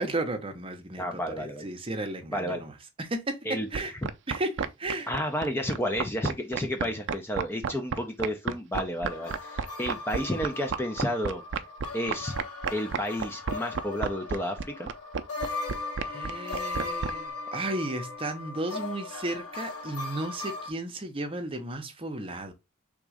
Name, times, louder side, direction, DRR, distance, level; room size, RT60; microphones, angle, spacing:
voice 1, 0.0-2.7 3.0-3.4 3.7-3.9 4.3-5.1 16.0-22.5, right 2 dB, 25° right, 0.8 m, -34 dB
voice 2, 1.0-1.7 2.3-2.6 3.5-3.7 5.1-11.4 11.9-12.3 12.7-14.9, equal, 10° left, 0.5 m, -31 dB
sound 1, 3.7-17.1, right 6 dB, 55° right, 0.5 m, -30 dB
sound 2, 9.0-20.7, left 3 dB, 85° left, 1.2 m, -38 dB
3.6 x 3.0 x 4.8 m
head